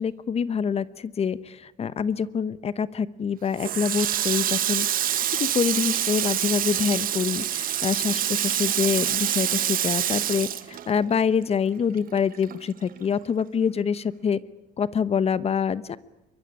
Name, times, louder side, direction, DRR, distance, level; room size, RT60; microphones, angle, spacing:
voice 1, 0.0-4.9 5.4-14.4 14.8-16.0, left 6 dB, 35° left, 16 dB, 0.9 m, -26 dB
Water tap faucet, 3.6-11.4 11.7-13.1, right 11 dB, 55° right, 1.2 m, -26 dB
23.5 x 22.0 x 10.0 m, 0.94 s
cardioid pair, 110°, 17 cm